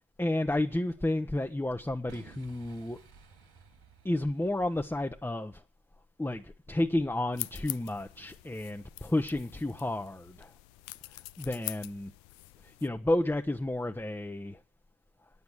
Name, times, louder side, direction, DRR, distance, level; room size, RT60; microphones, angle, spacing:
voice 1, 0.2-3.0 4.0-5.6 6.2-10.5 11.4-12.1 12.6-14.6, left 1 dB, 5° left, 0.9 m, -31 dB
Boom, 2.1-5.1, right 5 dB, 55° right, 3.1 m, -55 dB
sound 1, 7.3-12.9, left 21 dB, 80° left, 0.5 m, -44 dB
9.4 x 8.2 x 8.8 m
hypercardioid pair, 40°, 43 cm